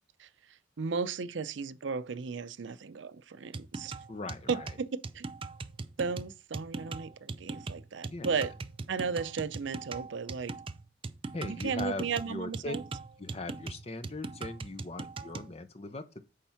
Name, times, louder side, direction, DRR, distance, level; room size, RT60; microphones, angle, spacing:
voice 1, 0.8-4.0 4.5-5.3 6.0-8.5 8.9-10.6 11.4-12.8, right 5 dB, 80° right, 0.5 m, -35 dB
sound 1, 3.5-15.5, right 3 dB, 30° right, 0.4 m, -40 dB
voice 2, 4.1-4.7 8.1-8.5 11.3-12.7 13.2-16.2, left 2 dB, 35° left, 0.7 m, -40 dB
8.7 x 3.6 x 5.6 m
head